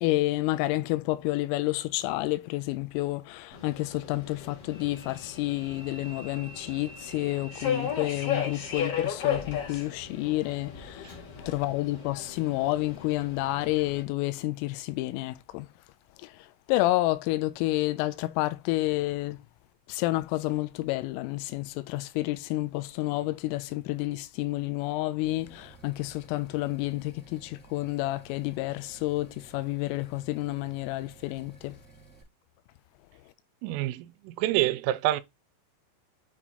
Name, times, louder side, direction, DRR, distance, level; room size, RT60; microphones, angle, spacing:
voice 1, 0.0-11.2 11.5-15.7 16.2-16.3 16.7-19.4 19.9-31.8, left 18 dB, 85° left, 3.1 m, -30 dB
Subway metro underground, 3.5-14.0, left 8 dB, 65° left, 1.5 m, -35 dB
sound 1, 25.2-32.2, right 4 dB, ahead, 1.0 m, -54 dB
voice 2, 33.6-35.2, right 15 dB, 85° right, 3.0 m, -27 dB
8.7 x 2.9 x 4.1 m
omnidirectional pair, 5.9 m